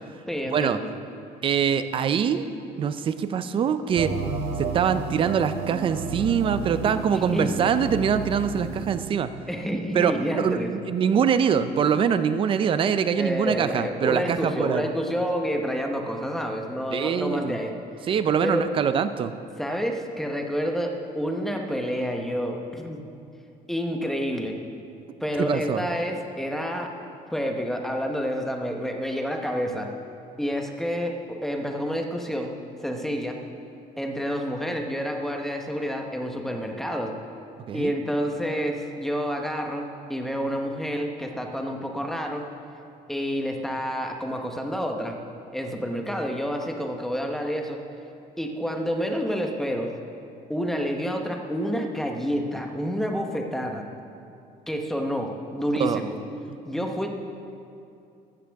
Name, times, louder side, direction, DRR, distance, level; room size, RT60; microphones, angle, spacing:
voice 1, 0.3-0.9 7.3-7.6 9.5-10.7 13.2-17.7 18.4-18.7 19.6-23.0 23.7-24.6 25.2-26.9 27.3-29.9 30.4-32.6 32.8-33.4 34.0-37.1 37.7-42.5 43.1-45.2 45.5-47.8 48.4-49.9 50.5-53.8 54.7-56.2 56.6-57.1, equal, ahead, 2 dB, 0.9 m, -28 dB
voice 2, 1.4-2.5 2.8-4.1 4.6-9.3 9.9-14.8 16.9-17.6 18.1-19.3 25.4-25.9 37.7-37.9 55.8-56.0 56.5-56.6, right 7 dB, 35° right, 11 dB, 0.5 m, -24 dB
sound 1, 3.9-9.1, right 4 dB, 80° right, 1.4 m, -32 dB
15.5 x 12.5 x 3.5 m, 2.6 s
cardioid pair, 170°, 16 cm